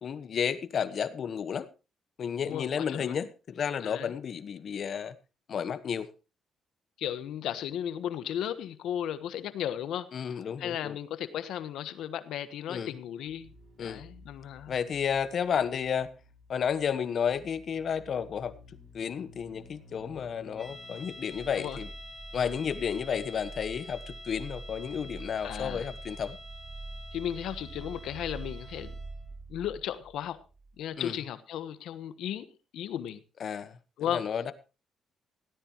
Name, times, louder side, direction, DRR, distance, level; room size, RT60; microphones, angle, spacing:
voice 1, 0.0-1.7 2.2-5.1 5.5-6.1 10.1-11.0 12.7-12.9 13.8-14.0 14.7-16.1 16.5-18.5 18.9-21.9 22.3-26.4 31.0-31.2 33.4-34.5, left 7 dB, 55° left, 1.2 m, -32 dB
voice 2, 2.5-3.2 3.8-4.1 7.0-10.3 10.6-13.5 13.8-14.7 21.6-21.8 25.4-25.9 27.1-28.9 29.5-30.4 30.8-33.2 34.0-34.2, left 10 dB, 80° left, 1.2 m, -35 dB
sound 1, 13.2-30.8 31.0-31.1, right 2 dB, 55° right, 7.2 m, -47 dB
sound 2, 20.6-29.3, left 1 dB, 5° right, 3.3 m, -48 dB
17.0 x 13.5 x 3.0 m
cardioid pair, 90°, 0 cm